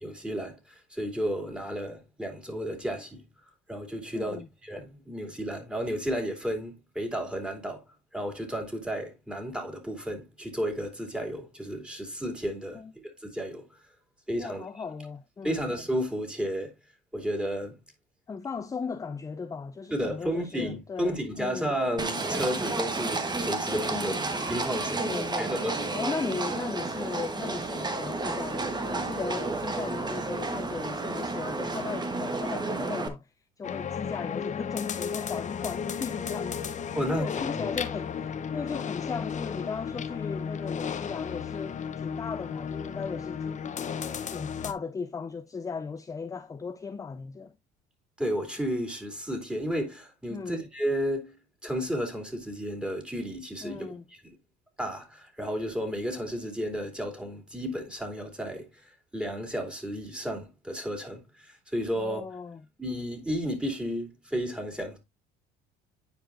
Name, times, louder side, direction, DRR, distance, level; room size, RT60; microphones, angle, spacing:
voice 1, 0.0-3.2 3.7-7.8 8.1-12.8 13.2-13.6 14.3-14.6 15.4-16.7 17.1-17.7 19.9-24.1 24.5-25.9 36.9-37.3 37.5-37.7 48.2-51.4 51.6-53.9 54.8-62.3 62.8-65.0, equal, 5° right, 2.9 m, -32 dB
voice 2, 4.1-4.5 12.7-12.9 14.4-15.7 18.3-21.7 23.9-24.3 24.9-25.5 25.9-43.7 44.3-47.5 50.3-50.6 53.6-54.0 62.0-62.6, left 5 dB, 15° left, 0.4 m, -37 dB
Livestock farm animals working animals, 22.0-33.1, right 3 dB, 20° right, 1.3 m, -31 dB
sound 1, 33.6-44.7, left 7 dB, 40° left, 0.9 m, -34 dB
9.8 x 4.6 x 2.6 m
supercardioid pair, 80°, 19 cm